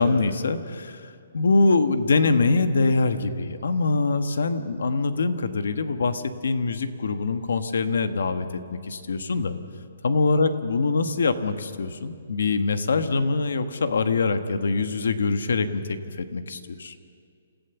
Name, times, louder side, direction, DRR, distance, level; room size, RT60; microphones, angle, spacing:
voice 1, 0.0-9.5 10.0-16.9, left 3 dB, 85° left, 9 dB, 1.4 m, -24 dB
27.5 x 15.5 x 7.1 m, 2.3 s
hypercardioid pair, 175°, 0 cm